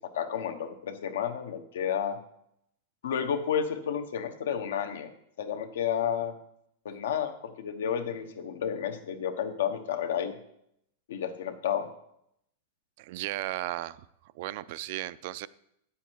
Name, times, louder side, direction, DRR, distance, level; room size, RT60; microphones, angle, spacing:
voice 1, 0.1-2.2 3.0-5.1 5.4-6.3 6.8-10.3 11.1-11.9, left 8 dB, 85° left, 7 dB, 1.0 m, -31 dB
voice 2, 13.0-14.0 14.3-15.5, right 15 dB, 50° right, 17 dB, 0.3 m, -35 dB
8.9 x 7.1 x 4.6 m, 0.75 s
supercardioid pair, 160°, 0 cm